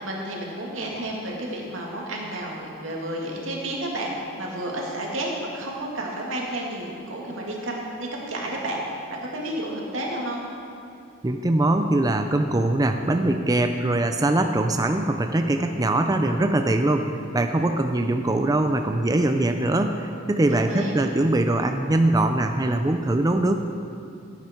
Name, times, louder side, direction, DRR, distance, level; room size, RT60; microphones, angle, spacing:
voice 1, 0.0-8.8 9.1-10.5 20.5-21.0, right 1 dB, 75° right, -2 dB, 2.3 m, -31 dB
voice 2, 11.2-23.6, right 2 dB, 20° right, 6 dB, 0.5 m, -22 dB
15.5 x 9.1 x 4.5 m, 2.5 s
head